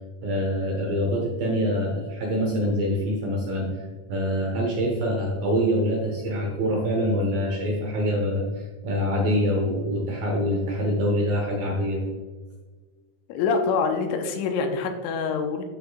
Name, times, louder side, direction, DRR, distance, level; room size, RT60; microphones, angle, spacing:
voice 1, 0.2-3.7 4.1-12.0, equal, 70° right, -1 dB, 2.2 m, -25 dB
voice 2, 13.3-15.6, left 5 dB, 85° left, 5 dB, 3.0 m, -25 dB
13.5 x 5.2 x 2.3 m, 1.4 s
omnidirectional pair, 5.4 m